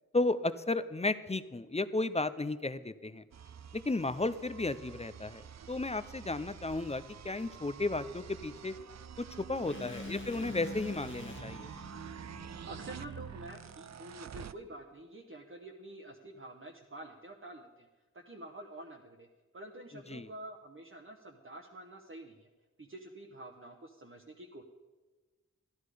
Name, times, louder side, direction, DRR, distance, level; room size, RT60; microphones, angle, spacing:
voice 1, 0.1-3.2 3.7-5.4 5.7-8.7 9.2-11.7 20.1-20.3, left 2 dB, 20° left, 14 dB, 0.5 m, -34 dB
sound 1, 3.3-14.5, right 8 dB, 60° right, 0.4 m, -48 dB
sound 2, 9.7-13.8, left 2 dB, 40° left, 1.3 m, -46 dB
voice 2, 12.7-17.9 18.1-19.3 19.5-22.5 22.8-24.6, right 1 dB, 40° right, 1 dB, 0.9 m, -48 dB
13.0 x 11.5 x 4.9 m, 1.3 s
wide cardioid pair, 60°, 31 cm